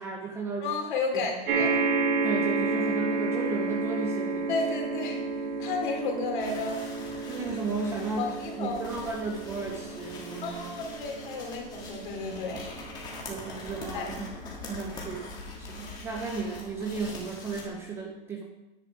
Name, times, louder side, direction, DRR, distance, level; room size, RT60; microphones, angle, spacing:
voice 1, 0.0-0.8 1.1-1.2 2.2-4.5 7.3-10.7 13.3-14.4 14.7-18.4, right 4 dB, 10° right, 1 dB, 0.5 m, -34 dB
voice 2, 0.6-1.8 4.5-5.2 5.6-6.8 8.2-8.8 10.4-12.7 13.9-14.2, left 4 dB, 55° left, 2 dB, 2.8 m, -32 dB
sound 1, 1.5-16.0 16.8-16.9 17.1-17.2, right 4 dB, 65° right, 2.5 m, -32 dB
sound 2, 6.4-17.7, left 3 dB, 15° left, 1.6 m, -43 dB
10.0 x 8.6 x 4.8 m, 1.0 s
hypercardioid pair, 160°, 30 cm